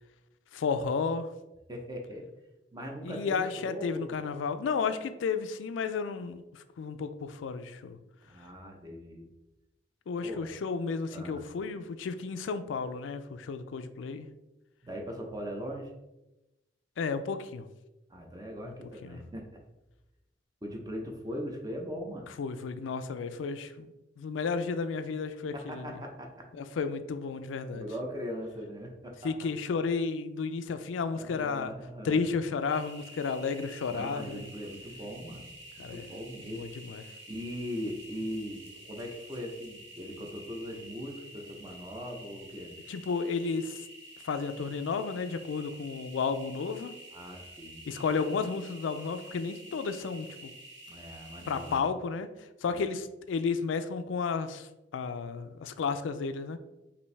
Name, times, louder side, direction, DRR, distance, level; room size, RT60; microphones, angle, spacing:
voice 1, 0.5-1.3 3.0-8.0 10.1-14.3 17.0-17.7 18.7-18.8 19.0-19.2 22.4-25.9 26.5-27.8 29.2-31.7 32.0-34.5 35.8-36.1 36.5-37.0 42.9-43.8 44.2-46.9 47.8-50.5 51.5-52.3 52.6-56.6, left 5 dB, 90° left, 10 dB, 0.4 m, -32 dB
voice 2, 1.7-2.2 2.7-4.2 8.2-9.3 10.2-10.5 11.1-11.4 14.8-15.9 18.1-19.6 20.6-22.3 25.5-26.5 27.7-29.3 31.1-32.2 33.9-36.7 37.3-42.7 47.1-47.8 50.9-51.8 52.7-52.8, equal, 20° right, 1 dB, 0.7 m, -40 dB
sound 1, 32.7-51.8, right 1 dB, 80° right, 1.0 m, -49 dB
5.2 x 2.7 x 3.3 m, 0.98 s
head